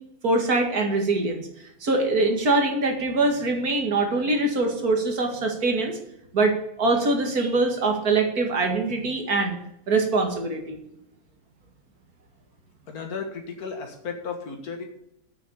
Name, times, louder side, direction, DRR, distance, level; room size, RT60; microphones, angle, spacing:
voice 1, 0.2-1.5 1.8-6.0 6.3-9.6 9.9-10.8, right 3 dB, 85° right, 3 dB, 2.5 m, -23 dB
voice 2, 12.9-14.9, left 5 dB, 90° left, 3 dB, 2.0 m, -34 dB
8.3 x 6.8 x 8.1 m, 0.77 s
omnidirectional pair, 1.5 m